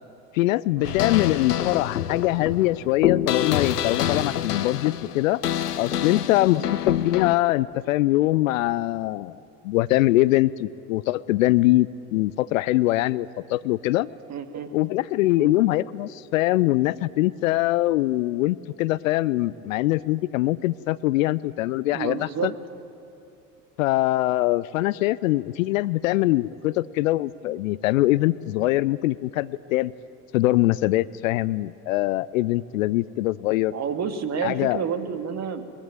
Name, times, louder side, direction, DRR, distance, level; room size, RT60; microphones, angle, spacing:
voice 1, 0.3-5.4 5.8-9.3 9.6-14.1 14.7-22.5 23.8-29.9 30.3-33.7 34.4-34.8, left 17 dB, 55° left, 19 dB, 0.6 m, -23 dB
sound 1, 0.8-7.3, left 10 dB, 75° left, 0.9 m, -27 dB
voice 2, 14.3-14.7 15.4-15.5 21.9-22.5 33.7-35.7, right 7 dB, 35° right, 8 dB, 2.1 m, -30 dB
23.0 x 22.0 x 9.0 m, 2.5 s
figure-of-eight pair, 70°, 47 cm